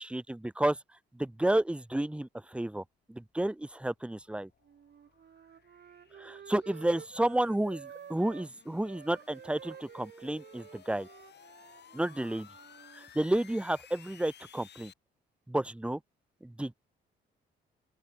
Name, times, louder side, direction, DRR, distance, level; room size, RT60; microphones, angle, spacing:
voice 1, 1.2-2.8 3.1-4.5 6.2-11.1 11.9-12.5 13.1-14.9 15.5-16.0 16.4-16.7, right 1 dB, 5° right, 0.7 m, -31 dB
sound 1, 3.8-14.9, left 9 dB, 60° left, 7.2 m, -57 dB
Wind instrument woodwind instrument, 4.6-8.5 8.8-13.1, right 8 dB, 55° right, 4.1 m, -51 dB
open air
cardioid pair, 90°, 20 cm